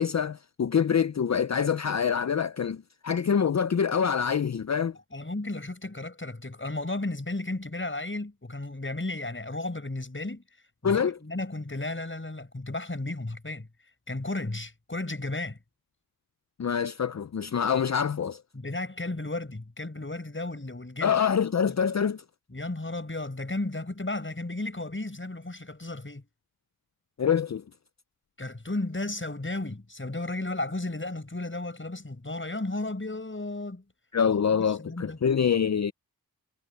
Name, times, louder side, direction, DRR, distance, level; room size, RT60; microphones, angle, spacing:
voice 1, 0.0-4.9 10.8-11.2 16.6-18.4 21.0-22.2 27.2-27.6 34.1-35.9, left 7 dB, 50° left, 0.6 m, -25 dB
voice 2, 5.1-10.4 10.8-13.7 14.1-15.6 18.5-21.2 21.7-21.8 22.5-26.2 28.4-33.8 34.6-35.2, left 2 dB, 35° left, 6.5 m, -34 dB
wide cardioid pair, 55°, 36 cm